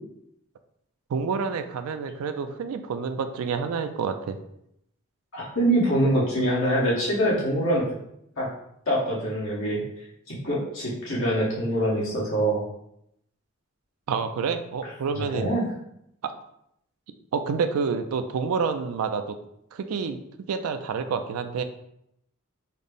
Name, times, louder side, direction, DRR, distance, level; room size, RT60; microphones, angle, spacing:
voice 1, 1.1-4.4 14.1-15.5 16.2-16.3 17.3-19.4 19.7-20.2 20.5-21.6, right 5 dB, 75° right, 9 dB, 0.3 m, -28 dB
voice 2, 5.3-7.9 8.4-8.5 8.9-9.8 10.3-12.6 15.2-15.6, right 1 dB, 60° left, -5 dB, 1.2 m, -24 dB
4.0 x 2.0 x 3.4 m, 0.76 s
head